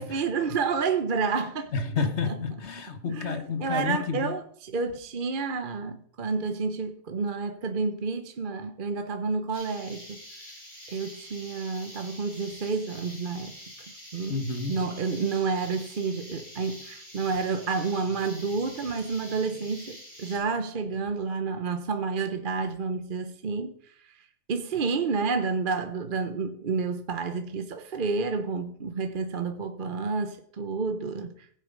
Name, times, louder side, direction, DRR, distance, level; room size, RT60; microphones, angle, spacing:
voice 1, 0.0-1.7 3.1-10.2 10.9-13.6 14.1-14.4 14.7-23.8 24.5-31.3, right 4 dB, 45° right, 0.9 m, -30 dB
voice 2, 1.7-4.4 14.3-14.7, left 5 dB, 60° left, 1.5 m, -30 dB
sound 1, 9.5-20.4, equal, 40° left, 7.5 m, -46 dB
19.0 x 8.1 x 5.2 m
omnidirectional pair, 1.4 m